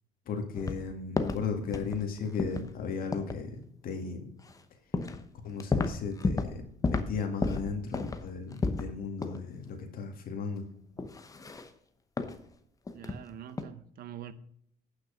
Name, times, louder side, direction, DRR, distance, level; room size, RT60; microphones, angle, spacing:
voice 1, 0.3-4.2 5.4-10.6, left 5 dB, 60° left, 2.0 m, -36 dB
sound 1, 0.5-0.8 1.2-1.5 1.7-2.0 2.4-2.7 3.1-3.4 4.5-4.6 4.9-5.2 5.5-6.6 6.8-7.1 7.4-8.9 9.2-9.4 9.8-9.9 11.0-11.7 12.2-12.4 12.9-13.2 13.5-13.6, left 3 dB, 20° left, 0.9 m, -32 dB
voice 2, 12.9-14.3, right 10 dB, 60° right, 0.8 m, -44 dB
8.8 x 6.1 x 5.1 m
cardioid pair, 110°, 17 cm